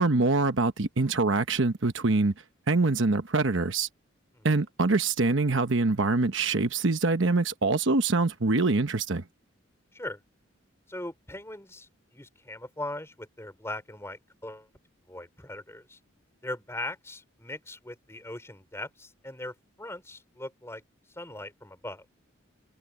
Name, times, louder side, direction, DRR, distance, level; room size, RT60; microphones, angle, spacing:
voice 1, 0.0-2.3 2.7-3.9 4.4-9.2, right 3 dB, 65° right, 1.0 m, -24 dB
voice 2, 10.9-14.7 15.1-16.0 16.4-20.8 21.1-22.0, left 1 dB, 15° left, 4.8 m, -40 dB
head